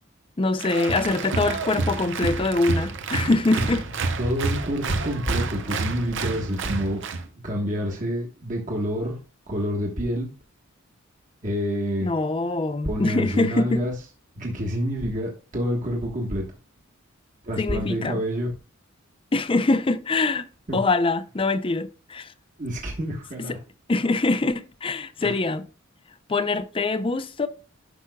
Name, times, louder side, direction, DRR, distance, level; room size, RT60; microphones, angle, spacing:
voice 1, 0.4-3.9 12.0-13.8 17.6-18.2 19.3-20.5 20.7-22.3 23.5-23.6 23.9-25.6 26.3-27.5, left 3 dB, 25° left, 0.5 m, -24 dB
Applause, 0.6-7.3, right 3 dB, 65° right, 0.8 m, -29 dB
voice 2, 4.2-7.0 7.4-9.2 9.5-10.3 11.4-12.1 12.8-13.9 14.4-16.4 17.4-18.5 20.7-20.8 22.6-23.6 25.2-25.4, equal, 40° right, 1.3 m, -27 dB
10.0 x 6.1 x 2.3 m
head